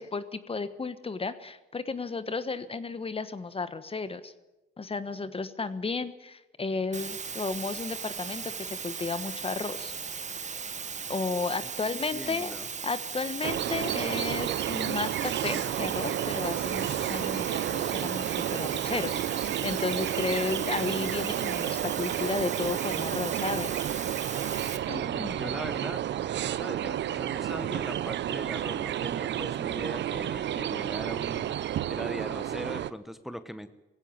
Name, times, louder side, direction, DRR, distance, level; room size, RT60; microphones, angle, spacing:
voice 1, 0.0-4.3 4.8-9.9 11.1-12.5 12.8-23.8 24.9-25.4, left 4 dB, 30° left, 13 dB, 1.3 m, -33 dB
sound 1, 6.9-24.8, right 5 dB, 35° right, 1.4 m, -37 dB
voice 2, 11.6-12.7 25.0-26.0 26.5-31.5 31.9-33.7, equal, ahead, 11 dB, 1.0 m, -40 dB
sound 2, 13.4-32.9, right 11 dB, 65° right, 0.7 m, -31 dB
18.5 x 16.5 x 9.6 m, 1.0 s
cardioid pair, 90°, 20 cm